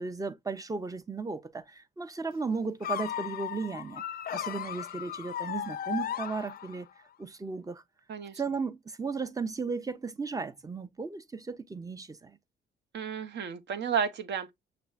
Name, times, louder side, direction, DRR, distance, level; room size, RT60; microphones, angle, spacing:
voice 1, 0.0-4.0 4.3-6.9 7.2-7.8 8.4-12.4, right 4 dB, 15° right, 0.5 m, -35 dB
sound 1, 2.8-7.0, left 10 dB, 50° left, 0.4 m, -36 dB
voice 2, 8.1-8.4 12.9-14.5, right 7 dB, 60° right, 0.7 m, -32 dB
6.0 x 3.3 x 2.2 m
cardioid pair, 90°, 20 cm